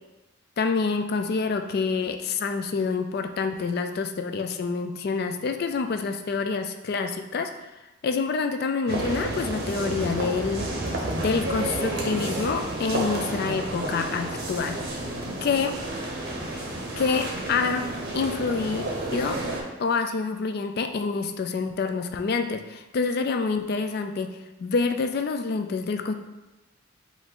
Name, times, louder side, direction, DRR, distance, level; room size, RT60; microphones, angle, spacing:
voice 1, 0.6-7.5 8.0-10.7 11.2-14.8 15.4-15.7 17.0-18.9 19.1-19.4 19.8-26.1, left 4 dB, 50° left, 7 dB, 0.3 m, -27 dB
sound 1, 8.9-19.6, right 1 dB, 50° right, 0.8 m, -31 dB
4.8 x 2.7 x 3.7 m, 1.0 s
head